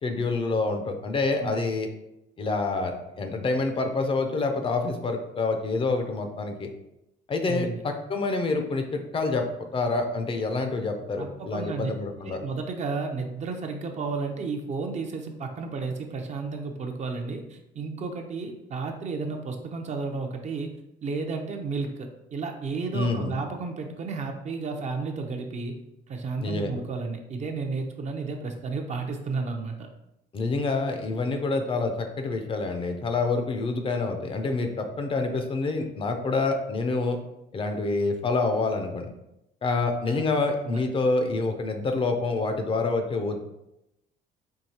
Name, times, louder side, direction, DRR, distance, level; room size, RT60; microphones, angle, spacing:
voice 1, 0.0-1.9 2.4-6.7 7.3-12.4 22.9-23.4 26.4-26.7 30.3-37.2 37.5-39.1 39.6-43.4, left 3 dB, 30° left, 5 dB, 0.5 m, -27 dB
voice 2, 7.5-7.8 11.2-11.9 12.2-20.7 21.0-25.8 26.1-29.9 40.1-40.2 40.6-40.8, right 4 dB, 40° right, 4 dB, 0.6 m, -32 dB
4.6 x 2.8 x 2.8 m, 0.87 s
cardioid pair, 110°, 17 cm